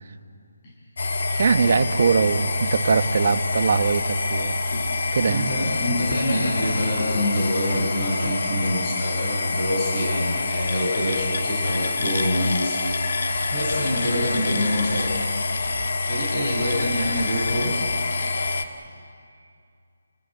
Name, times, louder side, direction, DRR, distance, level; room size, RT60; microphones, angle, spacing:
sound 1, 1.0-18.6, left 3 dB, 55° left, 1.8 m, -26 dB
voice 1, 1.3-4.6 5.1-5.5, right 5 dB, 40° right, 8 dB, 1.2 m, -22 dB
voice 2, 5.2-13.2 13.5-15.1 16.1-17.8, equal, 20° left, -6 dB, 7.3 m, -26 dB
30.0 x 19.0 x 8.9 m, 2.4 s
hypercardioid pair, 175°, 0 cm